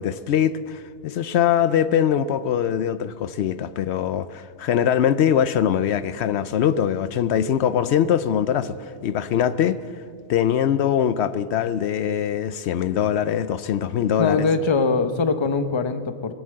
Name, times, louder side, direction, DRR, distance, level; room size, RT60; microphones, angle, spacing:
voice 1, 0.0-9.8 10.3-14.4, left 9 dB, 75° left, 0.8 m, -22 dB
voice 2, 14.2-16.3, left 4 dB, 30° left, 0.7 m, -22 dB
22.5 x 8.1 x 7.6 m
omnidirectional pair, 1.2 m